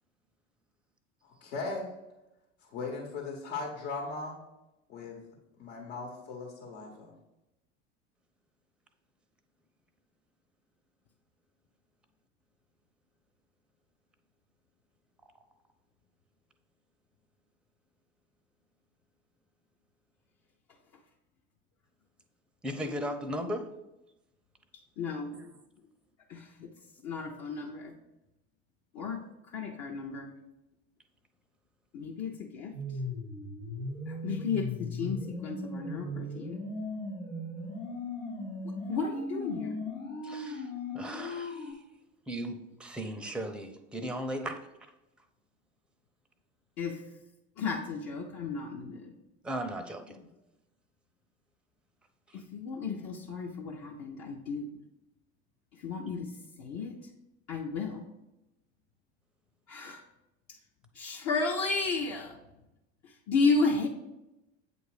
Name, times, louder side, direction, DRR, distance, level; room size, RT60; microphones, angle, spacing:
voice 1, 1.2-2.0 2.6-4.4 4.9-5.2 5.6-7.1, left 3 dB, 75° left, -1 dB, 1.3 m, -38 dB
voice 2, 22.6-23.7 25.3-25.5 40.2-41.8 42.3-44.6 49.4-50.2 52.3-52.4, equal, 5° right, 6 dB, 0.6 m, -37 dB
voice 3, 25.0-25.3 26.3-26.7 27.0-27.9 28.9-29.2 29.5-30.3 31.9-32.7 34.1-36.6 38.6-39.8 46.8-47.0 47.6-49.1 52.3-54.7 55.7-56.3 56.6-56.9 57.5-58.0 59.7-60.0 60.9-62.4 63.0-63.9, left 4 dB, 45° left, 0 dB, 0.8 m, -33 dB
sound 1, 32.7-41.7, left 1 dB, 90° left, 1.2 m, -38 dB
7.8 x 2.6 x 4.8 m, 0.94 s
hypercardioid pair, 70°, 37 cm